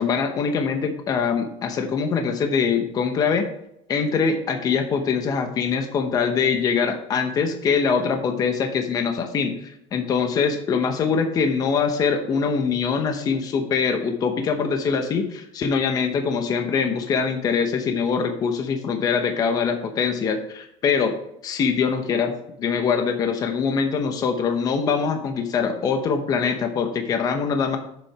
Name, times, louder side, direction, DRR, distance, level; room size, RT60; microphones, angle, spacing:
voice 1, 0.0-3.5 3.9-21.1 21.4-22.3 22.6-27.8, left 6 dB, 30° left, 5 dB, 0.8 m, -23 dB
7.2 x 6.4 x 4.8 m, 0.78 s
cardioid pair, 175°, 12 cm